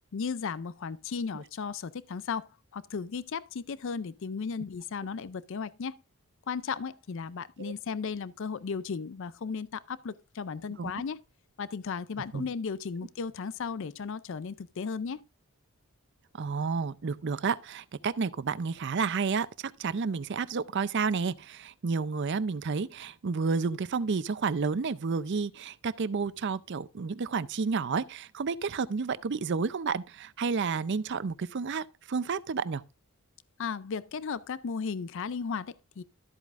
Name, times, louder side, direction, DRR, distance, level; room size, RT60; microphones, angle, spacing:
voice 1, 0.1-6.0 6.5-11.2 11.6-15.2 33.6-36.0, left 5 dB, 60° left, 0.4 m, -35 dB
voice 2, 16.4-32.8, right 5 dB, 50° right, 0.5 m, -31 dB
13.0 x 8.2 x 2.5 m
head